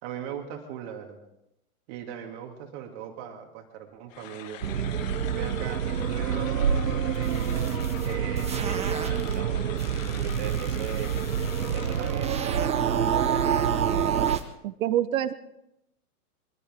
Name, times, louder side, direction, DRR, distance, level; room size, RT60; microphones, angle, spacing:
voice 1, 0.0-1.3 1.9-4.6 5.3-7.7 8.0-11.2 11.7-13.6, right 9 dB, 45° right, 3 dB, 2.6 m, -39 dB
sound 1, 4.1-12.5, left 10 dB, 60° left, 1.3 m, -43 dB
sound 2, 4.6-14.4, right 8 dB, 85° right, 1.0 m, -27 dB
sound 3, 7.1-9.4 9.8-14.4, right 6 dB, 15° right, 1.5 m, -37 dB
voice 2, 14.6-15.3, right 11 dB, 60° right, 14 dB, 1.1 m, -26 dB
23.5 x 15.5 x 3.7 m, 0.83 s
hypercardioid pair, 120°, 45 cm